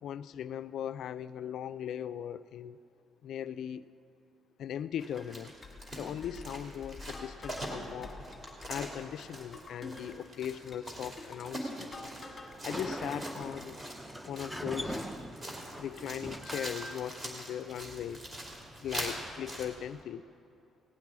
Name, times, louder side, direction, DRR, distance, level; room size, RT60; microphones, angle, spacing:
voice 1, 0.0-2.8 3.2-3.9 4.6-5.5 6.0-8.1 8.7-11.9 12.6-13.8 14.2-15.1 15.8-18.2 18.8-20.2, left 9 dB, 65° left, 14 dB, 0.3 m, -39 dB
sound 1, 5.0-19.6, right 1 dB, 20° right, 2.6 m, -43 dB
sound 2, 5.2-12.6 12.8-13.5, left 3 dB, 25° left, 1.6 m, -48 dB
Sliding door, 12.5-20.0, equal, 5° right, 0.6 m, -43 dB
17.5 x 6.1 x 9.5 m, 2.9 s
cardioid pair, 135°, 0 cm